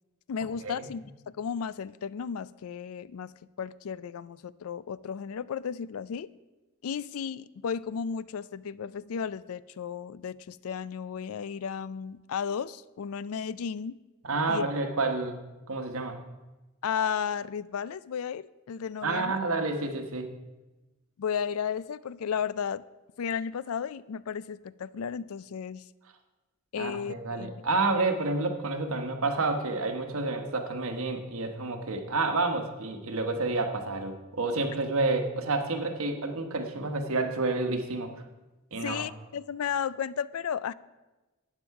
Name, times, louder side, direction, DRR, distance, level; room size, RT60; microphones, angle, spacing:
voice 1, 0.3-3.3 3.6-6.3 6.8-14.0 14.5-14.6 16.8-19.4 21.2-22.8 23.2-25.8 26.7-27.5 38.8-40.7, left 7 dB, 80° left, 18 dB, 0.4 m, -34 dB
voice 2, 14.2-15.4 15.7-16.2 19.0-20.3 26.8-38.1 38.7-39.0, right 3 dB, 75° right, 6 dB, 1.2 m, -29 dB
12.0 x 8.9 x 4.7 m, 1.1 s
head